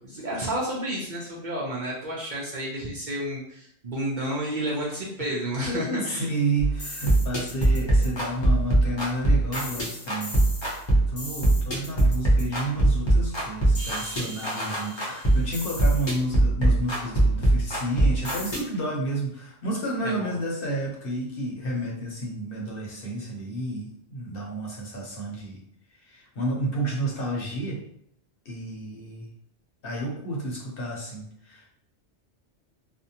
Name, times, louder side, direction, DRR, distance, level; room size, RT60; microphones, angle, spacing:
voice 1, 0.0-6.3 20.0-20.4, right 1 dB, 55° right, -5 dB, 0.6 m, -31 dB
voice 2, 5.7-10.4 10.9-25.6 26.0-27.8 28.4-29.3 29.8-31.8, right 1 dB, 60° left, -2 dB, 0.8 m, -31 dB
sound 1, 6.6-18.6, right 1 dB, 30° left, 0.6 m, -23 dB
2.5 x 2.1 x 2.7 m, 0.69 s
omnidirectional pair, 1.2 m